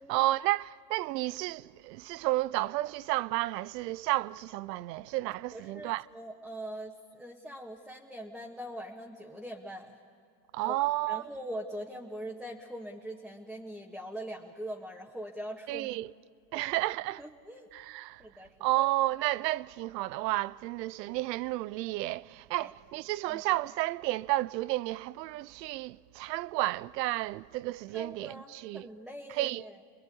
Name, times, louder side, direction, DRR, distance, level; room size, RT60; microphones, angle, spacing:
voice 1, 0.0-6.1 10.5-11.3 15.7-16.1 16.5-17.2 17.7-18.2 18.6-28.9 29.3-29.6, right 17 dB, 75° right, 0.6 m, -32 dB
voice 2, 5.5-10.0 10.7-10.8 11.1-15.9 16.5-16.7 17.2-17.7 18.2-18.5 22.6-22.7 23.3-23.4 27.9-29.8, right 1 dB, ahead, 1.8 m, -42 dB
29.0 x 21.5 x 8.6 m
hypercardioid pair, 85°, 49 cm